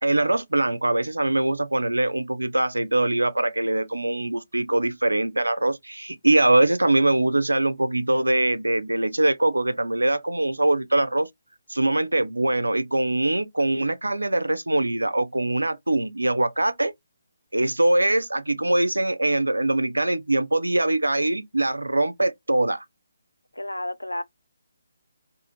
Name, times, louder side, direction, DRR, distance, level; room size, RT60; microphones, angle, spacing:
voice 1, 0.0-11.3 11.7-16.9 17.5-22.8, right 2 dB, 85° right, 0.4 m, -23 dB
voice 2, 23.6-24.2, left 1 dB, 90° left, 0.3 m, -31 dB
2.5 x 2.4 x 2.9 m
figure-of-eight pair, 145°, 0 cm